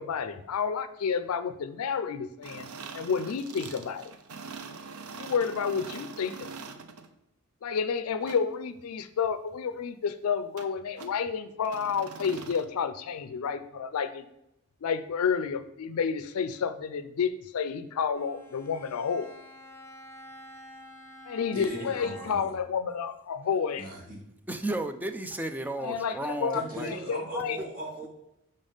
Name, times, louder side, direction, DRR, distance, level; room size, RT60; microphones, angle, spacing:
voice 1, 0.0-2.7 2.9-4.1 5.2-6.5 7.6-14.2 14.8-19.4 21.2-23.9 25.8-27.6, left 6 dB, 75° left, 11 dB, 0.4 m, -30 dB
sound 1, 2.4-7.1 8.2-8.4 10.6-10.7 11.0-11.2 11.6-12.7, right 4 dB, 80° right, 0.6 m, -43 dB
Bowed string instrument, 18.1-22.6, left 1 dB, 10° left, 0.7 m, -48 dB
voice 2, 21.5-22.5 23.7-24.2 26.5-28.1, right 1 dB, 40° right, -1 dB, 1.6 m, -38 dB
voice 3, 24.5-26.9, right 1 dB, 10° right, 7 dB, 0.3 m, -33 dB
5.4 x 3.5 x 5.4 m, 0.84 s
head